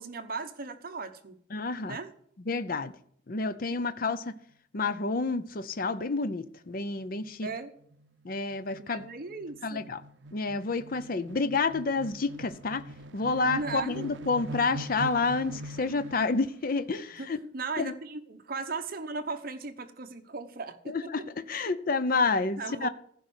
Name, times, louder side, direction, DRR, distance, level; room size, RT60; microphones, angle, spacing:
voice 1, 0.0-1.3 1.9-2.1 7.4-7.7 8.8-9.8 13.4-14.1 17.2-17.3 17.5-21.1 21.5-21.7 22.6-22.9, right 4 dB, 50° right, 8 dB, 1.0 m, -37 dB
voice 2, 1.5-2.0 2.5-2.9 3.3-4.3 4.7-7.5 8.2-9.0 9.6-10.0 10.3-12.8 13.1-17.4 17.8-17.9 20.9-22.9, left 3 dB, 50° left, 11 dB, 0.6 m, -29 dB
sound 1, 6.0-6.1 6.4-6.5 6.8-16.5, right 2 dB, 80° right, 0.6 m, -44 dB
15.0 x 5.5 x 8.1 m, 0.64 s
head